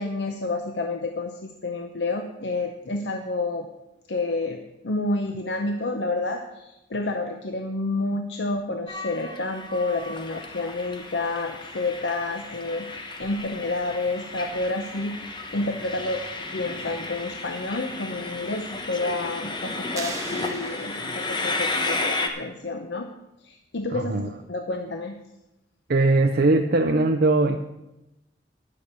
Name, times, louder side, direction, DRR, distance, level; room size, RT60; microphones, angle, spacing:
voice 1, 0.0-3.7 4.1-23.1 23.4-24.2 24.5-25.2, left 2 dB, 80° left, 5 dB, 0.8 m, -29 dB
Train, 8.9-22.3, left 2 dB, 25° left, 1.1 m, -33 dB
sound 1, 20.0-21.5, right 3 dB, 20° right, 1.6 m, -38 dB
voice 2, 23.9-24.3 25.9-27.6, right 2 dB, 60° right, 4 dB, 0.6 m, -20 dB
11.0 x 6.3 x 8.2 m, 0.94 s
head